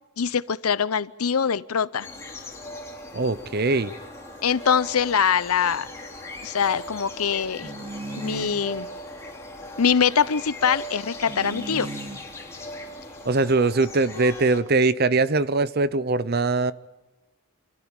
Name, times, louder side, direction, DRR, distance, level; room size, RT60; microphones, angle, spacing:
voice 1, 0.2-2.1 4.4-5.9 6.4-7.7 8.2-8.9 9.8-11.9, left 7 dB, 90° left, 0.7 m, -23 dB
sound 1, 2.0-14.6, left 1 dB, 15° left, 2.9 m, -39 dB
voice 2, 3.1-3.9 13.3-16.7, right 3 dB, 45° right, 0.8 m, -22 dB
sound 2, 7.6-8.6 11.3-12.2, right 2 dB, 25° right, 1.8 m, -35 dB
27.5 x 14.5 x 9.0 m
head